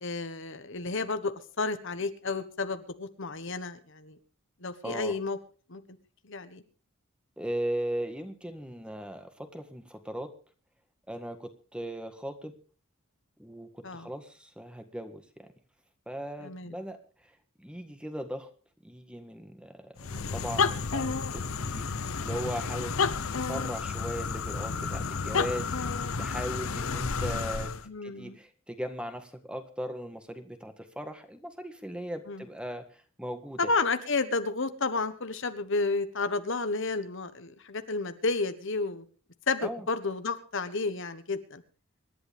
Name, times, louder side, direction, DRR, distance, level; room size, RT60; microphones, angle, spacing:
voice 1, 0.0-4.2 4.6-5.4 5.7-5.8 6.2-6.6 13.8-14.1 16.4-16.8 27.9-28.4 32.3-32.4 33.6-39.0 39.5-41.6, left 3 dB, 60° left, 10 dB, 1.3 m, -31 dB
voice 2, 4.8-5.1 7.4-10.3 11.1-12.5 13.4-15.5 16.1-17.0 17.6-18.5 18.8-23.0 23.3-27.7 28.0-33.7 39.6-39.9, equal, 5° right, 7 dB, 1.7 m, -38 dB
sound 1, 20.0-27.9, left 5 dB, 75° left, 0.9 m, -31 dB
26.0 x 11.5 x 3.5 m, 0.38 s
head